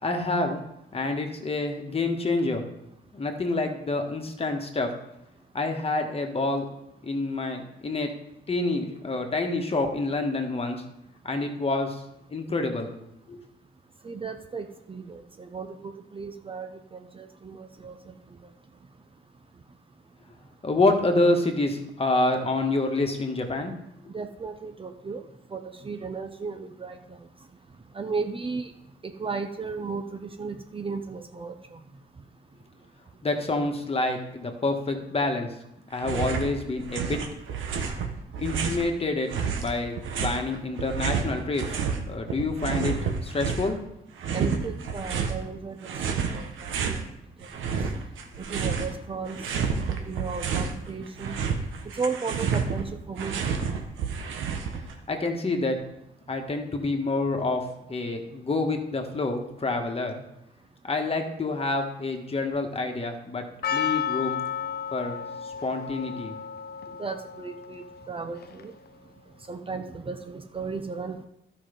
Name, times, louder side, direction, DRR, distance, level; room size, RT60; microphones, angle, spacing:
voice 1, 0.0-0.6 0.9-2.6 3.1-4.9 5.5-6.6 7.0-8.1 8.5-10.8 11.2-12.0 12.3-12.9 13.3-13.4 20.6-23.8 33.2-35.5 35.9-37.2 38.4-39.3 39.5-40.0 40.2-41.8 42.1-43.0 43.2-43.8 55.1-55.8 56.3-60.2 60.8-63.4 63.7-64.4 64.9-66.4, left 2 dB, 30° left, 4 dB, 1.6 m, -27 dB
voice 2, 14.0-18.0 24.1-25.2 25.5-27.0 27.9-28.7 29.2-31.8 44.3-45.8 46.3-46.7 48.5-49.4 50.0-51.3 52.0-53.4 67.0-68.7 69.5-71.3, right 4 dB, 25° right, 6 dB, 0.8 m, -35 dB
sound 1, 36.0-36.5 36.8-38.9 39.3-42.0 42.3-43.8 44.2-45.4 45.8-47.0 47.4-49.0 49.2-50.7 51.1-54.9, right 6 dB, 80° right, 1.3 m, -29 dB
Percussion, 63.6-68.9, left 8 dB, 55° left, 0.8 m, -33 dB
12.0 x 5.6 x 5.3 m, 0.85 s
cardioid pair, 90°, 20 cm